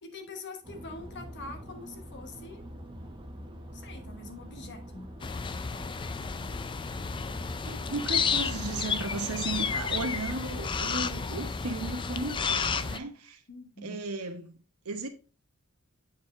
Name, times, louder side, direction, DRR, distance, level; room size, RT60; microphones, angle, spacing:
voice 1, 0.0-2.6 3.7-5.1 13.5-14.0, left 3 dB, 55° left, 1.2 m, -44 dB
sound 1, 0.6-12.8, equal, 20° right, 1.1 m, -45 dB
sound 2, 5.2-13.0, left 5 dB, 20° left, 0.3 m, -32 dB
voice 2, 7.6-13.4 13.8-14.6 14.8-15.1, right 2 dB, 85° right, 1.1 m, -35 dB
8.2 x 4.8 x 3.2 m
head